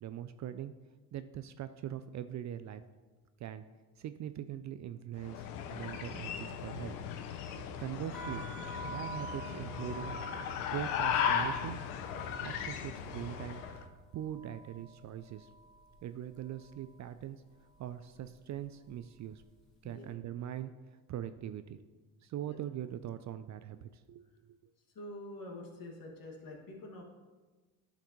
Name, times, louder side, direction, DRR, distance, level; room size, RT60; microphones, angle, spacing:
voice 1, 0.0-0.7 1.1-2.8 3.4-3.6 4.0-7.0 7.8-8.5 8.8-10.2 10.7-11.8 12.4-13.6 14.1-15.5 16.0-17.4 17.8-19.4 19.8-21.8 22.2-24.3, right 11 dB, 40° right, 11 dB, 0.4 m, -41 dB
sound 1, 5.2-13.8, left 8 dB, 90° left, 0.7 m, -37 dB
sound 2, 8.1-16.0 16.3-16.9 17.6-17.9 18.1-19.6, right 2 dB, ahead, 2.3 m, -48 dB
voice 2, 24.9-27.0, left 1 dB, 50° left, 0 dB, 2.1 m, -46 dB
10.5 x 5.8 x 3.1 m, 1.3 s
supercardioid pair, 75°, 44 cm